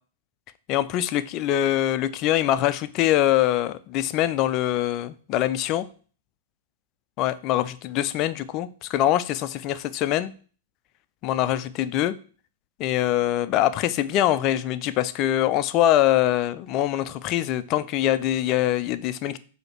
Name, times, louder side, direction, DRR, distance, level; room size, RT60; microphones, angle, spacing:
voice 1, 0.7-5.9 7.2-10.3 11.2-12.2 12.8-19.4, left 13 dB, 35° left, 0.4 m, -23 dB
7.7 x 2.8 x 5.8 m
figure-of-eight pair, 100°, 0 cm